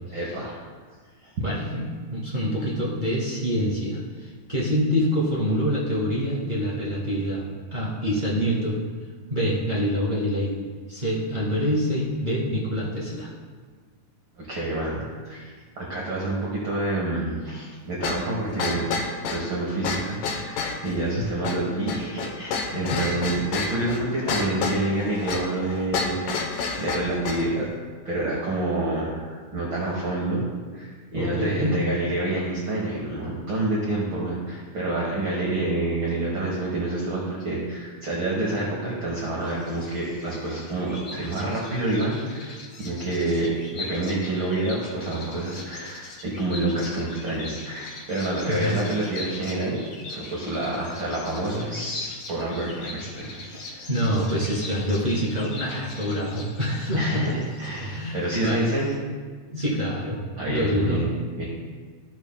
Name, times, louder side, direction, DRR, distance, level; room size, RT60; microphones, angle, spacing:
voice 1, 0.1-0.6 1.2-1.3 14.4-18.9 19.3-27.7 28.0-30.5 30.7-49.8 50.1-53.8 56.9-57.3 57.6-58.9 60.4-61.1 61.4-61.5, right 2 dB, 55° right, -4 dB, 1.3 m, -28 dB
voice 2, 1.4-7.4 7.7-8.8 9.3-10.6 10.9-13.3 22.7-23.2 31.1-31.8 48.5-48.8 53.9-57.2 57.8-58.7 59.5-60.2 60.5-61.0, equal, 25° right, -7 dB, 1.0 m, -26 dB
sound 1, 18.0-27.5, left 4 dB, 85° left, 2.5 m, -30 dB
Bird vocalization bird call bird song, 39.4-59.0, left 2 dB, 60° left, 2.4 m, -42 dB
13.0 x 7.0 x 2.2 m, 1.5 s
omnidirectional pair, 3.7 m